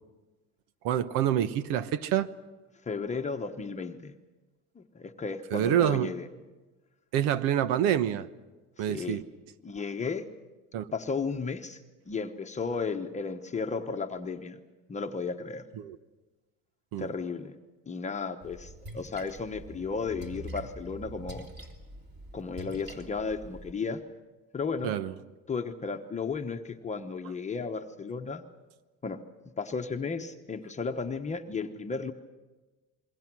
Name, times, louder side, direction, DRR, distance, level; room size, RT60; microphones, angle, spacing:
voice 1, 0.8-2.3 5.5-6.1 7.1-8.3 8.8-9.2 10.7-10.9 15.8-16.0 16.9-17.1 24.8-25.1, right 10 dB, 80° right, 1.1 m, -27 dB
voice 2, 2.9-4.1 4.8-6.3 8.9-9.2 9.6-10.3 10.9-11.8 12.1-14.6 14.9-15.6 17.0-17.6 17.9-21.5 22.3-24.0 24.5-24.9 25.5-28.4 29.0-29.2 29.6-32.1, left 5 dB, 20° left, 1.0 m, -34 dB
Splash splatter, 18.4-23.7, right 1 dB, 30° right, 2.9 m, -45 dB
28.5 x 22.0 x 6.2 m
cardioid pair, 130°, 33 cm